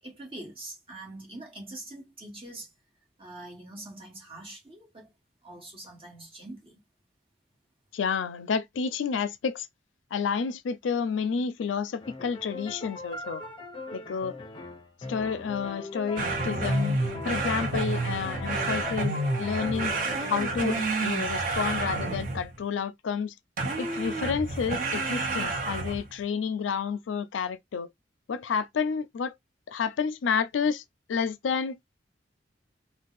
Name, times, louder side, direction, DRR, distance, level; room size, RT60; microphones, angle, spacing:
voice 1, 0.0-2.7 3.2-5.1 5.4-6.8, right 2 dB, 30° right, 1.4 m, -44 dB
voice 2, 7.9-9.7 10.1-13.4 13.9-14.4 15.1-17.0 17.2-19.9 20.3-23.3 23.8-27.9 28.3-29.3 29.7-30.8 31.1-31.8, left 6 dB, 90° left, 0.4 m, -30 dB
sound 1, 12.0-21.0, left 3 dB, 25° left, 0.6 m, -40 dB
sound 2, 16.2-22.6 23.6-26.1, right 2 dB, 50° right, 0.7 m, -29 dB
2.6 x 2.1 x 3.9 m
head